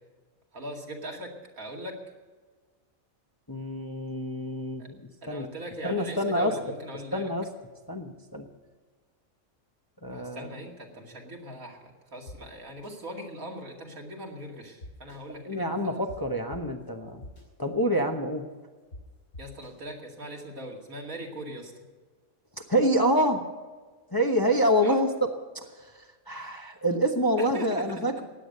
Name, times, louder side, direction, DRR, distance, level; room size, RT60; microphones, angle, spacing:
voice 1, 0.5-1.3 1.6-2.0 4.8-4.9 5.2-7.3 10.1-11.8 12.1-16.0 19.4-21.7 24.8-25.0 27.5-27.8, right 1 dB, 80° right, 0 dB, 2.8 m, -40 dB
voice 2, 3.5-5.0 5.3-5.5 5.8-6.6 7.1-7.5 7.9-8.4 10.0-10.5 15.3-17.2 17.6-18.4 22.7-23.4 24.1-25.3 25.5-25.9 26.3-28.2, equal, 15° left, 3 dB, 1.0 m, -26 dB
sound 1, 12.3-12.4 12.8-12.9 14.8-15.2 16.1-16.2 16.5-16.6 17.2-17.4 18.9-19.0 19.3-19.7, left 1 dB, 65° left, 5.2 m, -43 dB
16.5 x 10.0 x 6.6 m, 1.4 s
omnidirectional pair, 1.4 m